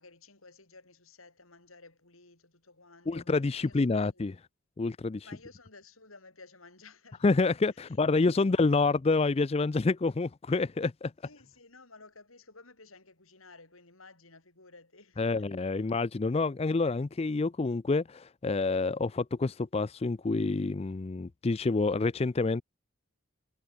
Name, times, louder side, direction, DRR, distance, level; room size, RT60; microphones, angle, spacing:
voice 1, 0.0-4.3 5.2-7.4 7.7-8.0 8.2-8.8 11.2-15.9, left 3 dB, 90° left, 8.0 m, -55 dB
voice 2, 3.1-4.3 4.8-5.2 7.2-11.1 15.2-22.6, left 3 dB, 30° left, 0.4 m, -28 dB
head